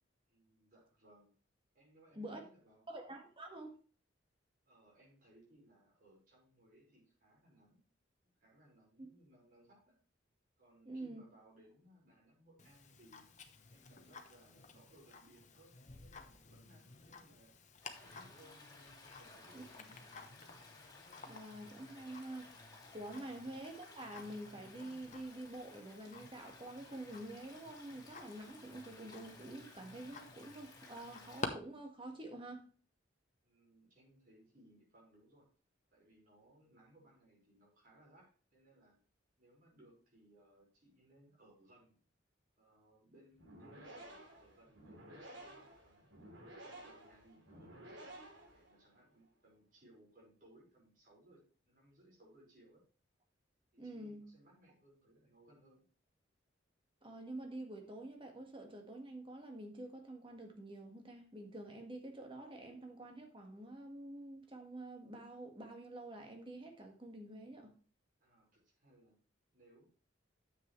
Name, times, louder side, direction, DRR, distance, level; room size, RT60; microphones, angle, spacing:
voice 1, 0.3-1.4 1.7-2.9 4.7-7.8 8.4-10.0 10.6-13.3 13.7-17.6 17.9-18.6 19.0-19.9 33.4-35.5 35.9-39.0 39.4-42.0 42.6-46.1 46.6-48.1 48.5-52.8 53.7-55.8 68.2-69.2 69.5-69.8, right 1 dB, 45° right, 5.4 m, -65 dB
voice 2, 2.9-3.8 9.0-9.1 10.8-11.2 19.5-19.7 21.2-22.5 22.9-32.7 53.8-54.2 57.0-67.7, right 1 dB, 25° right, 1.7 m, -48 dB
Tick-tock, 12.6-31.5, left 4 dB, 40° left, 1.0 m, -52 dB
Stream, 17.8-31.4, left 3 dB, 20° left, 2.5 m, -58 dB
sound 1, 43.3-49.0, right 1 dB, 70° right, 3.4 m, -54 dB
9.6 x 7.7 x 3.2 m
head